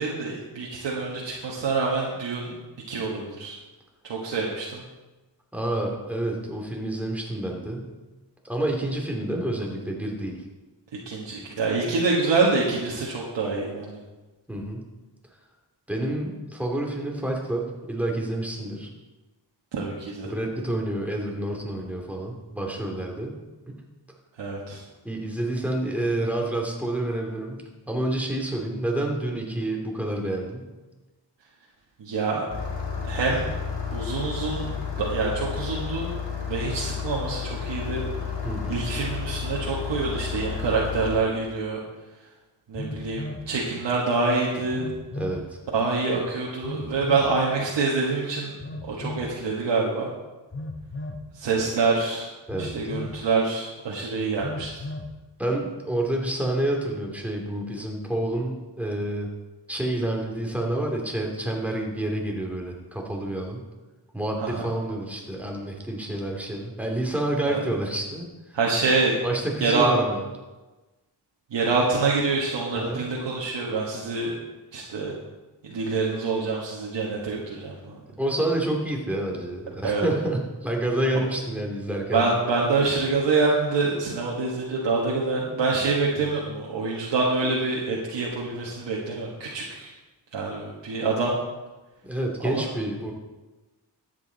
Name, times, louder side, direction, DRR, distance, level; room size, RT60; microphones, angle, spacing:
voice 1, 0.0-2.5 2.9-3.6 4.0-4.8 11.0-14.0 19.7-20.3 24.4-24.8 32.0-32.5 33.1-33.5 33.9-36.1 36.5-38.0 38.7-41.8 42.7-44.9 45.7-48.5 48.8-50.1 51.3-52.3 52.6-54.8 64.4-64.7 67.5-67.6 68.5-69.2 69.6-69.9 71.5-74.3 74.7-75.2 75.6-78.0 79.8-80.1 82.1-89.9 90.3-91.4 92.4-92.6, right 3 dB, 80° right, -3 dB, 1.6 m, -26 dB
voice 2, 5.5-7.9 8.4-10.4 14.5-14.8 15.9-18.9 20.2-23.4 23.7-23.8 25.0-30.7 38.4-38.8 45.2-45.6 52.5-52.7 55.4-59.3 59.7-63.6 64.1-68.6 69.2-70.2 72.7-73.0 78.2-82.5 86.1-86.3 92.0-93.1, right 1 dB, 5° right, 0 dB, 2.6 m, -28 dB
Engine starting, 32.5-41.2, left 7 dB, 85° left, 2.2 m, -31 dB
Telephone, 41.4-41.5 42.7-43.5 44.7-45.4 46.6-47.3 48.6-49.3 50.5-51.2 52.5-53.2 54.4-55.1, left 2 dB, 30° left, 1.0 m, -35 dB
13.0 x 8.5 x 4.0 m, 1.2 s
cardioid pair, 80°, 42 cm